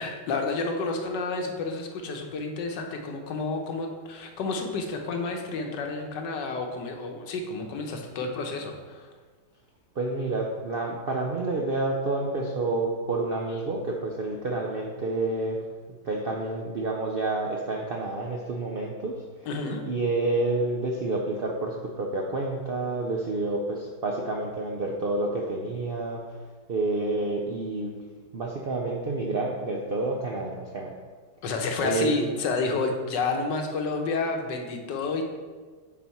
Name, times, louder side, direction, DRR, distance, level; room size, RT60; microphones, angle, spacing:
voice 1, 0.0-9.1 19.5-19.8 31.4-35.2, left 3 dB, 90° left, 3 dB, 1.5 m, -30 dB
voice 2, 10.0-15.6 16.1-19.2 19.8-26.2 26.7-27.9 28.3-30.9 31.8-32.3, right 2 dB, 70° right, 0 dB, 0.5 m, -29 dB
7.3 x 4.1 x 4.4 m, 1.4 s
omnidirectional pair, 1.8 m